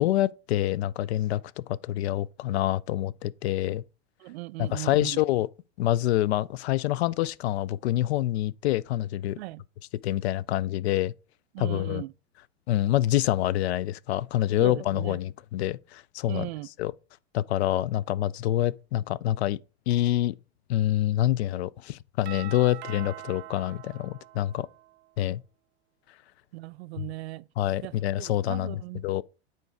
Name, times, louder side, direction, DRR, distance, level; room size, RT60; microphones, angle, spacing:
voice 1, 0.0-1.4 1.7-3.8 4.6-5.5 5.8-9.4 10.0-11.1 11.6-12.0 12.7-16.5 16.8-16.9 17.3-19.6 19.9-20.3 20.7-24.7 25.2-25.4 27.6-28.8 29.0-29.2, left 14 dB, 75° left, 0.5 m, -26 dB
voice 2, 4.2-5.2 9.4-9.6 11.5-12.1 14.6-15.2 16.3-16.7 26.5-27.5 27.8-29.2, right 20 dB, 75° right, 0.5 m, -38 dB
Doorbell, 22.3-25.1, right 16 dB, 30° right, 0.6 m, -43 dB
7.0 x 4.6 x 4.6 m
supercardioid pair, 125°, 33 cm